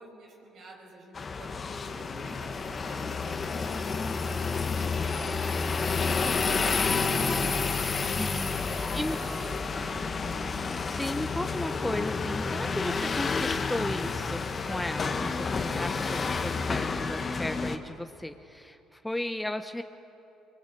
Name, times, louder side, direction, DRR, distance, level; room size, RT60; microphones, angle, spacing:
voice 1, 0.0-3.8 4.2-5.3 5.9-7.9 8.3-10.0, right 2 dB, 60° right, 0 dB, 5.5 m, -49 dB
sound 1, 1.1-17.8, left 4 dB, 40° left, 1.5 m, -30 dB
voice 2, 8.2-8.5 8.9-9.2 10.9-19.8, left 1 dB, 10° left, 8 dB, 0.9 m, -35 dB
24.0 x 20.0 x 7.6 m, 3.0 s
supercardioid pair, 70°, 0 cm